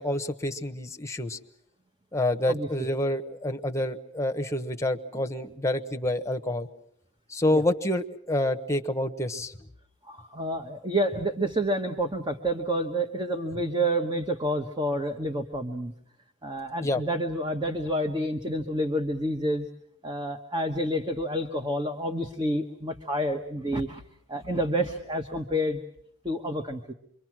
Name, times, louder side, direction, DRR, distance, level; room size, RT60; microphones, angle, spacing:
voice 1, 0.0-1.4 2.1-6.7 7.3-9.5 16.8-17.0, left 1 dB, 15° left, 5 dB, 1.1 m, -28 dB
voice 2, 10.0-15.9 16.4-19.7 20.0-24.0 24.3-25.8 26.2-26.9, right 1 dB, 20° right, 6 dB, 1.2 m, -29 dB
27.5 x 23.5 x 6.1 m, 0.70 s
head